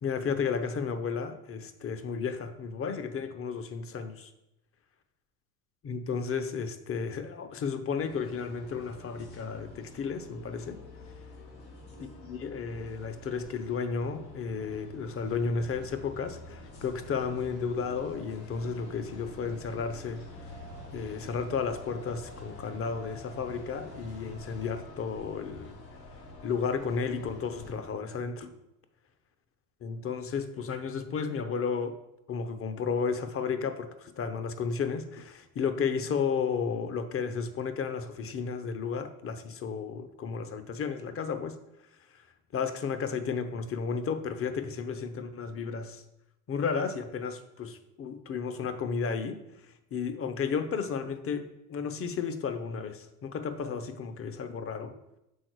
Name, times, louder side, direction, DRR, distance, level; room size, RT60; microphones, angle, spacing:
voice 1, 0.0-4.3 5.8-10.8 12.0-20.2 20.9-25.8 26.4-28.5 29.8-32.0 32.3-41.6 42.1-42.2 42.5-46.0 46.5-49.4 49.9-55.0, left 5 dB, 30° left, 10 dB, 0.7 m, -33 dB
sound 1, 8.0-27.7, left 1 dB, 85° left, 2.3 m, -47 dB
6.4 x 3.8 x 4.6 m, 0.88 s
hypercardioid pair, 85°, 48 cm